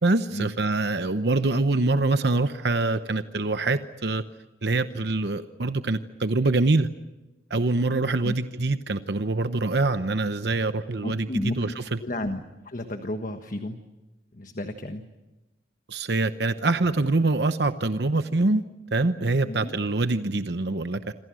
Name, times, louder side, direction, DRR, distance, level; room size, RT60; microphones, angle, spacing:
voice 1, 0.0-4.2 4.6-6.9 7.5-12.0 15.9-18.6 18.9-21.1, right 2 dB, 60° right, 10 dB, 0.9 m, -24 dB
voice 2, 11.0-11.6 12.0-13.8 14.3-15.0 19.5-19.8, left 1 dB, 45° left, 7 dB, 1.4 m, -32 dB
27.5 x 26.5 x 6.3 m, 1.1 s
head